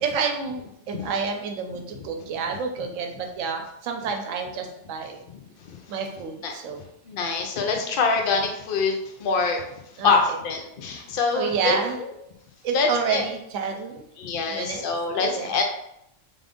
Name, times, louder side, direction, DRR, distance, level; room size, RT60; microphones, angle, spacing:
voice 1, 0.0-5.2 5.9-6.8 10.0-10.1 10.9-11.0 11.3-12.0 12.6-14.0 14.5-14.8 15.1-15.5, right 6 dB, 90° right, 4 dB, 1.0 m, -29 dB
voice 2, 7.1-9.6 10.0-12.1 12.7-13.2 14.2-15.6, left 4 dB, 55° left, 3 dB, 0.7 m, -25 dB
3.4 x 2.5 x 3.6 m, 0.78 s
omnidirectional pair, 1.3 m